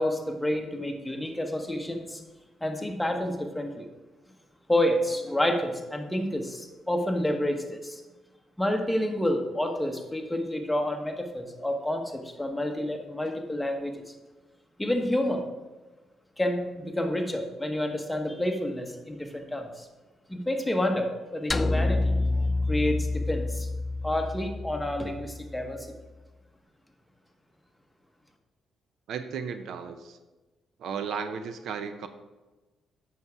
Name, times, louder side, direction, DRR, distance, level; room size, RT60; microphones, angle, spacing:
voice 1, 0.0-2.2 2.6-3.9 4.7-8.0 8.6-13.9 14.8-15.4 16.4-19.9 20.3-23.7 24.0-25.9, left 1 dB, 5° left, 3 dB, 1.1 m, -29 dB
sound 1, 21.5-25.9, left 2 dB, 25° left, 0.3 m, -28 dB
voice 2, 29.1-30.2 30.8-32.1, right 6 dB, 70° right, 10 dB, 0.6 m, -34 dB
7.9 x 6.0 x 4.8 m, 1.2 s
cardioid pair, 90°, 0 cm